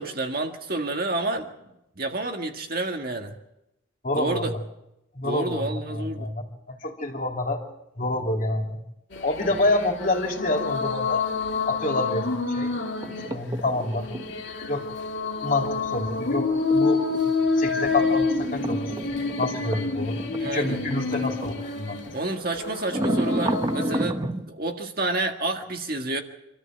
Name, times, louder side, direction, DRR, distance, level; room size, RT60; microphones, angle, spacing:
voice 1, 0.0-1.5 2.0-3.3 4.1-4.5 5.2-6.3 20.4-20.8 21.1-21.3 22.1-26.2, right 2 dB, 45° right, 3 dB, 1.8 m, -29 dB
voice 2, 4.0-4.6 5.1-6.4 6.7-7.6 8.0-8.8 9.2-11.2 11.6-12.8 13.3-14.1 14.7-14.9 15.4-17.1 17.6-18.9 19.4-22.0, left 2 dB, 40° left, 1 dB, 3.2 m, -27 dB
sound 1, 9.1-24.1, left 4 dB, 60° left, 2.3 m, -28 dB
sound 2, 13.0-14.4 16.5-21.6 22.0-22.2 22.9-24.5, right 1 dB, 20° right, 0.7 m, -31 dB
26.5 x 14.0 x 7.8 m, 0.89 s
head